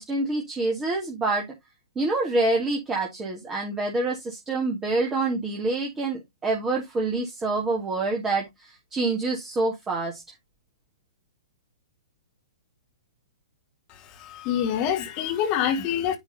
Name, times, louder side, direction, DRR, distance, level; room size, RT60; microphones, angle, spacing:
voice 1, 0.0-1.5 2.0-10.2, right 2 dB, 15° right, 1.7 m, -26 dB
voice 2, 13.9-16.2, left 9 dB, 30° left, 1.6 m, -26 dB
9.6 x 3.5 x 4.0 m
figure-of-eight pair, 110°, 3 cm